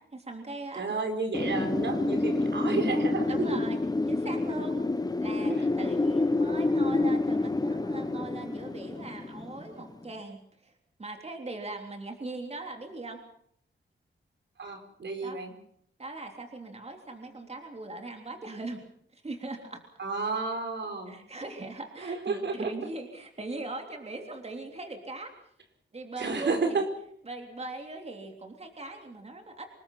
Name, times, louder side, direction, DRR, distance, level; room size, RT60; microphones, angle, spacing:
voice 1, 0.0-1.0 3.3-3.8 4.1-4.8 5.2-10.7 11.0-13.2 15.2-15.4 16.0-18.8 19.1-19.8 21.1-25.3 25.9-26.8 27.3-29.7, right 2 dB, 35° right, 3 dB, 3.4 m, -40 dB
voice 2, 0.7-3.5 5.5-5.7 14.6-15.5 20.0-21.2 22.0-22.7 26.2-26.8, right 4 dB, 65° right, 5 dB, 4.6 m, -31 dB
Wind, 1.3-10.0, left 2 dB, 20° left, 0.8 m, -28 dB
26.5 x 20.5 x 5.7 m, 0.67 s
wide cardioid pair, 100°, 20 cm